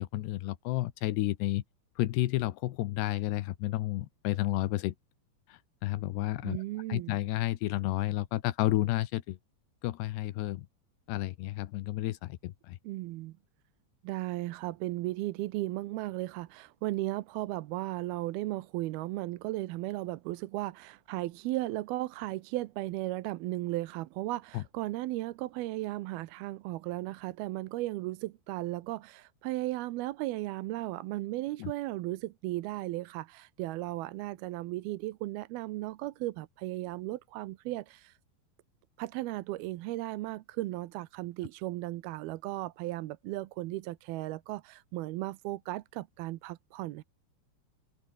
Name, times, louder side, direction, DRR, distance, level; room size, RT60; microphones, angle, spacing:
voice 1, 0.0-1.6 2.0-4.9 5.5-6.6 6.9-9.4 9.8-10.7 11.1-12.8 24.5-24.6 31.6-31.7, left 16 dB, 85° left, 3.2 m, -31 dB
voice 2, 6.4-7.2 12.8-13.4 14.0-38.2 39.0-47.0, right 17 dB, 75° right, 2.6 m, -36 dB
omnidirectional pair, 4.7 m